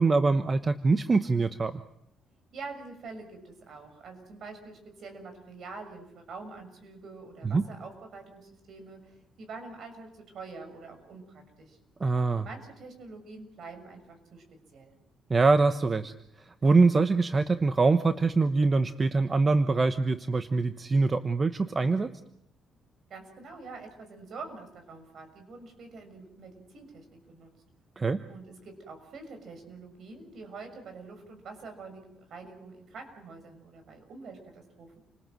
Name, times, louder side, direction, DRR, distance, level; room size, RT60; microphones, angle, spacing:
voice 1, 0.0-1.8 7.4-7.7 12.0-12.4 15.3-16.1 16.6-22.2 28.0-28.2, right 3 dB, 30° right, 10 dB, 1.1 m, -24 dB
voice 2, 2.5-11.8 12.4-14.4 14.7-14.9 23.1-27.5 28.3-35.0, right 4 dB, 65° right, 6 dB, 6.8 m, -45 dB
29.5 x 20.0 x 7.8 m, 0.77 s
cardioid pair, 90°, 0 cm